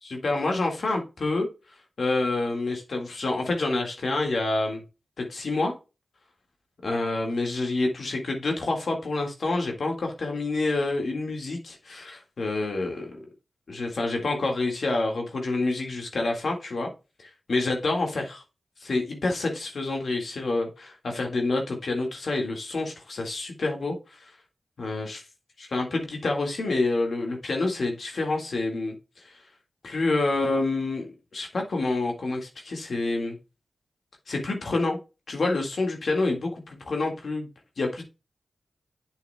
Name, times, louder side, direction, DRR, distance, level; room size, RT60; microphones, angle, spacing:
voice 1, 0.0-1.5 2.0-4.8 5.2-5.8 6.8-13.2 13.7-16.9 17.2-18.4 18.8-24.3 24.8-25.2 25.7-28.9 29.2-29.4 29.8-33.4 34.3-35.0 35.3-37.5 37.8-38.0, left 2 dB, 75° left, 2 dB, 1.9 m, -28 dB
8.4 x 6.8 x 2.3 m, 0.29 s
cardioid pair, 50°, 0 cm